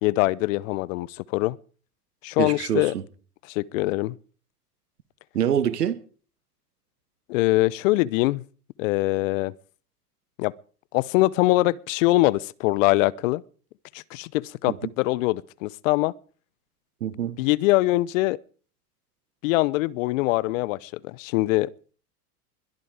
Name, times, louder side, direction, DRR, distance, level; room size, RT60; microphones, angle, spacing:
voice 1, 0.0-1.6 2.2-2.9 3.5-4.2 7.3-8.4 8.8-9.5 10.4-10.5 10.9-13.4 13.9-16.1 17.4-18.4 19.4-21.7, left 19 dB, 55° left, 0.8 m, -23 dB
voice 2, 2.4-3.0 5.3-6.0 14.7-14.8 17.0-17.4, right 9 dB, 85° right, 1.6 m, -25 dB
21.5 x 12.0 x 5.0 m
hypercardioid pair, 100°, 46 cm